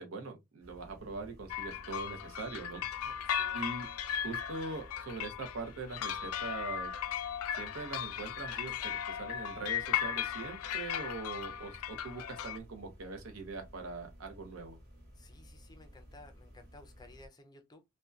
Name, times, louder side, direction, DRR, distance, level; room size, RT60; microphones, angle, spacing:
voice 1, 0.0-2.8 3.5-3.9 4.2-6.9 7.6-14.8, right 3 dB, 80° right, 0.7 m, -42 dB
sound 1, 0.6-17.3, equal, 45° right, 1.1 m, -55 dB
sound 2, 1.5-12.6, left 9 dB, 90° left, 0.3 m, -37 dB
voice 2, 3.0-3.6 15.1-17.8, left 2 dB, 20° left, 0.4 m, -56 dB
2.6 x 2.1 x 2.3 m
head